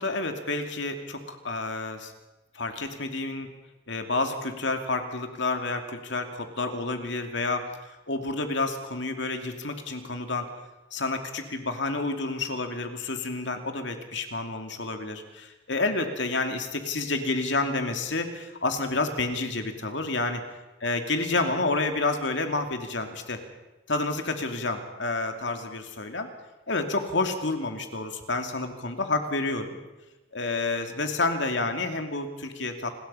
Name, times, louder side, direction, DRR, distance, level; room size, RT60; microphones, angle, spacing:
voice 1, 0.0-2.1 2.5-3.5 3.9-10.5 10.9-20.4 20.8-23.4 23.9-26.3 26.7-29.8 30.3-32.9, left 3 dB, 60° left, 6 dB, 2.6 m, -29 dB
29.0 x 21.0 x 5.7 m, 1.1 s
head